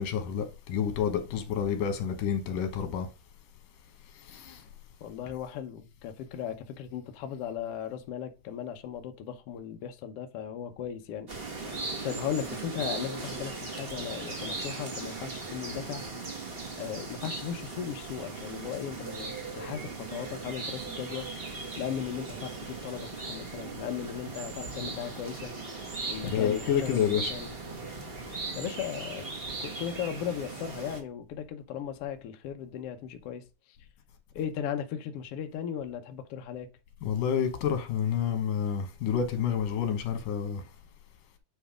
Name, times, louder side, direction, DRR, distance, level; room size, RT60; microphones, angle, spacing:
voice 1, 0.0-3.1 4.1-4.7 26.2-27.4 37.0-40.6, left 8 dB, 85° left, 2.9 m, -29 dB
voice 2, 5.0-11.3 12.0-16.1 16.8-21.3 21.8-25.5 26.1-27.5 28.3-29.3 29.6-33.8 34.3-36.7, left 9 dB, 65° left, 1.6 m, -37 dB
sound 1, 11.3-31.0, right 3 dB, 70° right, 0.5 m, -38 dB
9.5 x 3.2 x 5.0 m
omnidirectional pair, 3.6 m